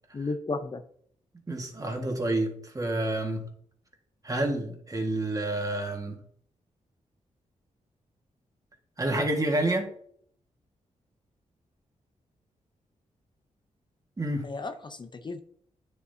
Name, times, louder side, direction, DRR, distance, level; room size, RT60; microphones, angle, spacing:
voice 1, 0.1-0.8 14.4-15.4, left 3 dB, 35° left, 7 dB, 0.7 m, -34 dB
voice 2, 1.5-3.4 4.2-6.2 9.0-9.9 14.2-14.5, right 1 dB, 25° right, 3 dB, 1.7 m, -29 dB
9.7 x 6.9 x 2.8 m, 0.63 s
cardioid pair, 80°, 13 cm